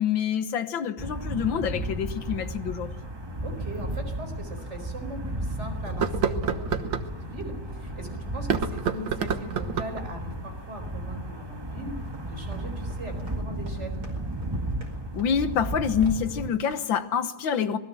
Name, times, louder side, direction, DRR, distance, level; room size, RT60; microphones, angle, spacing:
voice 1, 0.0-2.9 15.1-17.8, left 7 dB, 85° left, 2.0 m, -26 dB
sound 1, 1.0-16.5, right 1 dB, 15° right, 1.4 m, -34 dB
sound 2, 2.7-2.8 3.9-4.0 4.6-4.7 5.9-7.1 8.4-10.0, right 7 dB, 80° right, 2.0 m, -28 dB
voice 2, 3.4-14.0, right 1 dB, 35° right, 5.0 m, -40 dB
sound 3, 12.0-16.4 16.6-17.0, right 1 dB, 55° right, 5.4 m, -52 dB
26.5 x 20.5 x 7.7 m
omnidirectional pair, 2.1 m